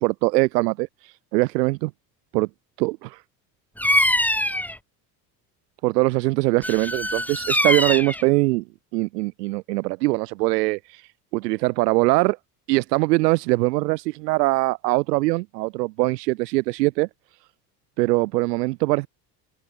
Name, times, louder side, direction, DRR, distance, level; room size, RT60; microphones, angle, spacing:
voice 1, 0.0-1.9 2.3-2.5 2.8-3.2 5.8-8.6 8.9-11.0 11.3-12.4 12.7-17.1 18.0-19.1, right 22 dB, 75° right, 3.2 m, -22 dB
Bird vocalization bird call bird song, 3.8-4.8 6.6-8.2, left 1 dB, 5° left, 4.0 m, -23 dB
hypercardioid pair, 65°, 48 cm